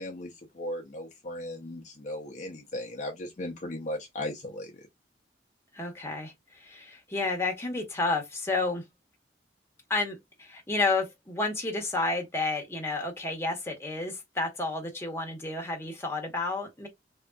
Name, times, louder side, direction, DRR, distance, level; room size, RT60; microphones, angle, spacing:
voice 1, 0.0-4.9, left 1 dB, 45° left, 0.6 m, -37 dB
voice 2, 5.7-8.9 9.9-16.9, left 3 dB, 15° left, 0.9 m, -31 dB
3.4 x 2.6 x 2.2 m
head